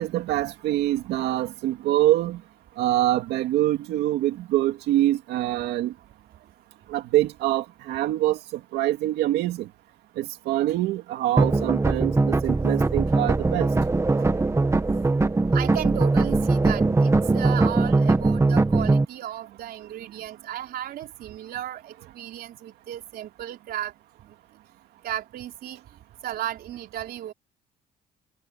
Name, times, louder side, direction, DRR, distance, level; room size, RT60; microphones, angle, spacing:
voice 1, 0.0-2.4 2.8-5.9 6.9-8.4 8.7-9.7 10.2-13.7, right 14 dB, 80° right, 2.3 m, -24 dB
sound 1, 11.4-19.0, right 3 dB, 15° right, 1.8 m, -21 dB
voice 2, 15.5-23.9 25.0-25.8 26.2-27.3, right 12 dB, 65° right, 4.4 m, -34 dB
cardioid pair, 110°, 17 cm